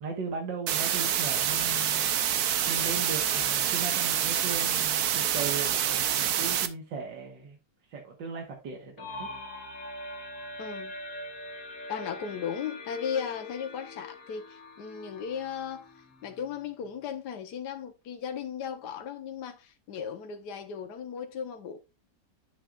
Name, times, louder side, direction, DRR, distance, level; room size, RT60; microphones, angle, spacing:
voice 1, 0.0-2.0 2.7-7.6 7.9-9.3, right 4 dB, 85° right, 2.1 m, -37 dB
sound 1, 0.7-6.7, right 9 dB, 65° right, 1.2 m, -27 dB
sound 2, 9.0-16.6, left 2 dB, 55° left, 1.6 m, -42 dB
voice 2, 10.6-10.9 11.9-21.8, left 7 dB, 70° left, 1.5 m, -36 dB
10.5 x 6.5 x 2.4 m
omnidirectional pair, 1.9 m